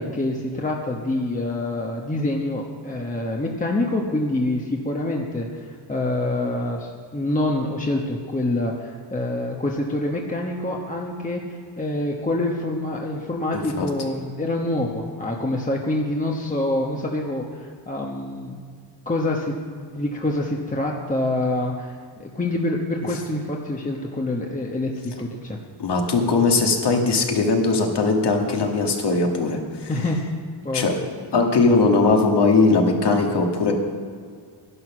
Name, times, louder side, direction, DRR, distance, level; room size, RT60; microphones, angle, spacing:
voice 1, 0.0-18.6 19.1-21.9 22.2-24.9 25.2-25.6 29.9-30.2 30.6-30.8, left 1 dB, 15° left, -1 dB, 1.1 m, -26 dB
voice 2, 13.5-13.9 25.8-29.9 30.7-31.0 31.3-33.7, left 3 dB, 60° left, 2 dB, 2.0 m, -20 dB
12.0 x 11.0 x 6.1 m, 2.1 s
cardioid pair, 115°, 46 cm